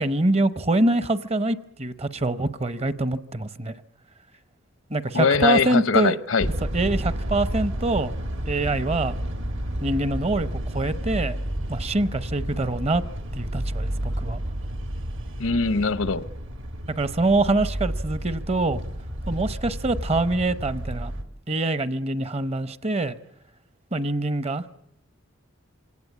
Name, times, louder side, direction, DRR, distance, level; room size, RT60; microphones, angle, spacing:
voice 1, 0.0-3.7 4.9-6.2 6.7-8.1 8.5-9.2 9.8-11.3 11.7-13.0 13.4-14.4 17.0-18.8 19.3-21.1 21.5-23.2 23.9-24.6, right 2 dB, 30° right, 0.8 m, -24 dB
voice 2, 5.1-6.5 15.4-16.3, left 5 dB, 85° left, 0.9 m, -22 dB
sound 1, 6.4-21.2, equal, 70° right, 2.0 m, -31 dB
25.5 x 18.0 x 8.5 m
head